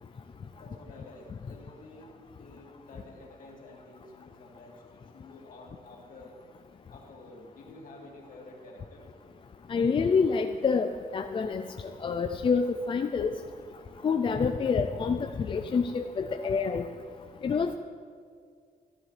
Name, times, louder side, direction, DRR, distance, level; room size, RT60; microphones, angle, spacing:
voice 1, 0.6-6.4 6.9-9.0, left 2 dB, 60° left, -2 dB, 2.3 m, -50 dB
voice 2, 9.7-13.3 14.0-16.9 17.4-17.7, left 5 dB, 35° left, 6 dB, 0.4 m, -27 dB
14.0 x 12.5 x 3.3 m, 2.1 s
wide cardioid pair, 160°, 16 cm